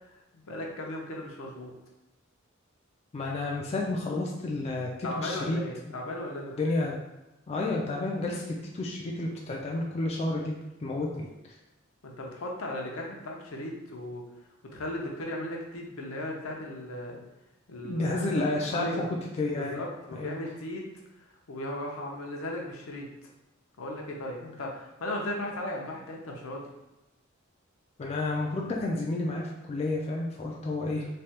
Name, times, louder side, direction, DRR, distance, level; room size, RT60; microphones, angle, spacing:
voice 1, 0.1-1.7 5.0-6.6 12.0-14.2 14.6-17.2 17.7-18.4 18.7-19.1 19.6-20.9 21.2-23.1 23.8-26.7, left 1 dB, 75° left, 0 dB, 0.6 m, -36 dB
voice 2, 3.1-5.6 6.6-7.0 7.5-10.5 10.8-11.3 17.8-19.8 20.1-20.3 28.0-31.1, left 2 dB, 30° left, -2 dB, 0.3 m, -30 dB
3.2 x 2.2 x 2.8 m, 1.0 s
head